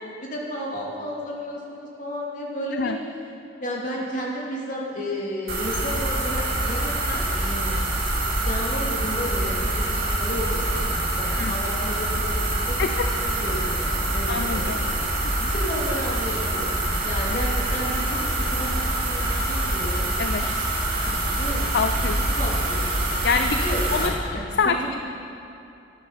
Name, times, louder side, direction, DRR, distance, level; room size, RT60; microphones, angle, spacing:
voice 1, 0.0-2.9 3.6-8.0 8.3-14.8 15.2-20.0 21.0-21.7 22.0-23.0 23.6-24.4, equal, 40° left, -3 dB, 2.4 m, -33 dB
sound 1, 5.5-24.1, right 1 dB, 50° right, 2.0 m, -25 dB
voice 2, 14.3-14.9 15.4-15.5 17.3-17.4 20.2-20.5 21.7-22.2 23.2-23.6 23.9-24.1 24.6-25.0, left 5 dB, 60° left, 7 dB, 0.4 m, -25 dB
13.0 x 10.5 x 5.6 m, 2.7 s
head